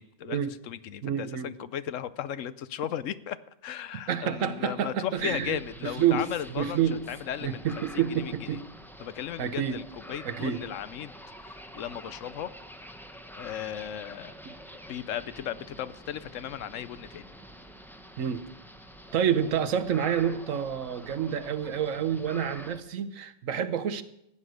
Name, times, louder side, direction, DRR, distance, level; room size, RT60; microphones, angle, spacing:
voice 1, 0.0-3.4 3.6-8.6 9.0-11.1 11.4-12.5 13.4-14.3 14.9-17.3, left 10 dB, 75° left, 15 dB, 1.0 m, -36 dB
voice 2, 1.0-1.5 4.1-5.6 5.8-6.2 6.6-7.0 7.4-8.6 9.4-9.8 10.2-10.6 14.5-14.6 18.2-18.4 19.1-24.0, right 8 dB, 75° right, 10 dB, 1.2 m, -28 dB
sound 1, 5.1-22.8, equal, ahead, 0.8 m, -47 dB
15.0 x 9.8 x 6.4 m, 0.80 s
omnidirectional pair, 1.4 m